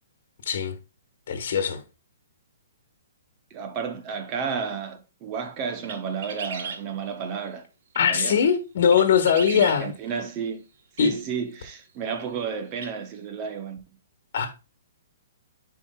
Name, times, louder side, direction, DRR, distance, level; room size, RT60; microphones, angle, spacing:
voice 1, 1.3-1.8 7.9-9.9 11.0-11.1 14.3-14.5, left 7 dB, 55° left, 1.4 m, -21 dB
voice 2, 3.5-7.7 8.1-8.4 9.5-10.6 11.0-13.8, right 6 dB, 25° right, 0.7 m, -32 dB
sound 1, 5.8-6.8 7.9-8.3 8.9-9.8 11.0-11.1 12.2-12.3 12.8-12.9, right 5 dB, 55° right, 1.1 m, -36 dB
9.8 x 4.7 x 2.3 m
hypercardioid pair, 170°, 0 cm